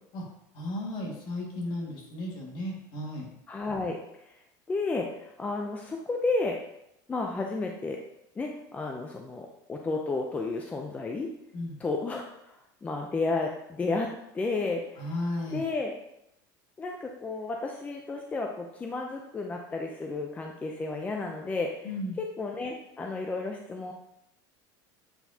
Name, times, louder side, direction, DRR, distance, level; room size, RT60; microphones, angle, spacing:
voice 1, 0.5-3.3 11.5-11.8 15.0-15.6 21.8-22.2, left 1 dB, 50° left, -1 dB, 1.9 m, -34 dB
voice 2, 3.5-4.0 4.7-6.6 7.1-8.0 8.4-11.3 11.8-12.5 12.8-14.1 14.3-14.8 15.5-15.9 16.8-21.9 22.2-23.9, left 3 dB, 15° left, 2 dB, 0.5 m, -32 dB
7.9 x 4.5 x 2.8 m, 0.82 s
cardioid pair, 140°, 10 cm